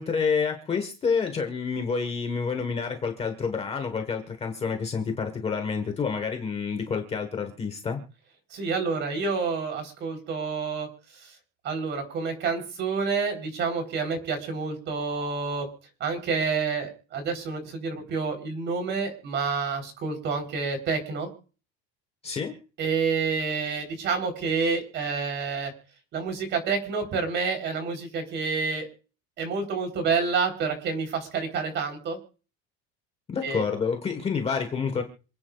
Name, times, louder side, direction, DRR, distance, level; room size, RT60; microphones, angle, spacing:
voice 1, 0.0-8.0 22.2-22.6 33.3-35.0, left 5 dB, 20° left, 6 dB, 1.3 m, -28 dB
voice 2, 8.5-10.9 11.6-15.7 16.0-21.3 22.8-25.7 26.1-28.9 29.4-32.2 33.4-33.6, right 5 dB, 35° right, 5 dB, 3.8 m, -28 dB
27.5 x 9.7 x 2.4 m, 0.38 s
cardioid pair, 180°, 31 cm